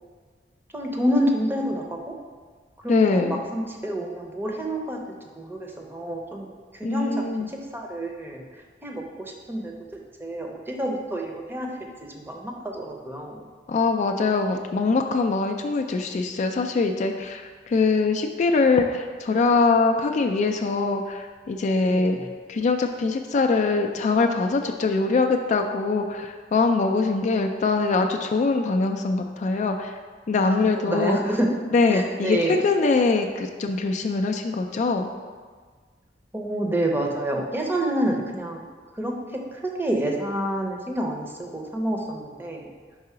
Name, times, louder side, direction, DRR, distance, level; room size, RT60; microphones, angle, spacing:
voice 1, 0.7-2.2 2.8-5.0 5.4-6.5 6.7-9.7 10.2-11.7 12.0-13.5 21.9-22.3 30.4-31.5 31.9-32.6 36.3-38.6 39.0-42.7, right 1 dB, 15° right, 1 dB, 0.6 m, -28 dB
voice 2, 2.9-3.4 6.8-7.5 13.7-22.2 22.5-29.9 30.3-31.2 31.7-35.1, left 3 dB, 40° left, 4 dB, 0.3 m, -23 dB
4.8 x 3.8 x 5.6 m, 1.5 s
head